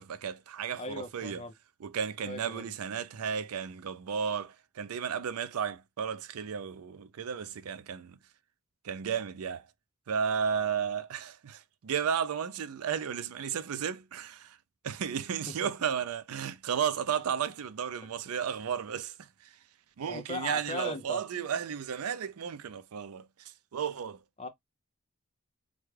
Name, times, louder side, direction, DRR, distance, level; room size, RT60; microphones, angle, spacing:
voice 1, 0.0-1.4 1.8-8.2 8.8-9.7 10.1-14.6 14.8-19.3 20.0-24.2, right 7 dB, 85° right, 0.4 m, -33 dB
voice 2, 0.8-1.5 2.3-2.7 15.5-15.6 20.1-21.2 24.4-24.5, left 3 dB, 25° left, 0.4 m, -38 dB
3.4 x 2.2 x 3.1 m
head